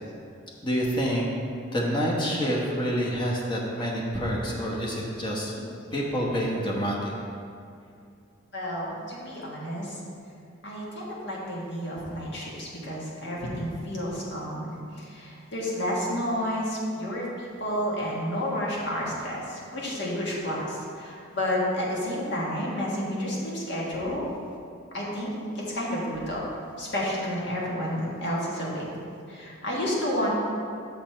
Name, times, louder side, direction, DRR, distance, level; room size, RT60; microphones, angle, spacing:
voice 1, 0.6-1.3 1.7-5.6 5.9-7.1, equal, 20° left, -3 dB, 1.1 m, -27 dB
voice 2, 8.5-10.0 10.6-24.2 24.9-26.4 26.8-28.8 29.3-30.3, equal, 55° left, -5 dB, 1.7 m, -30 dB
7.4 x 5.8 x 4.4 m, 2.4 s
head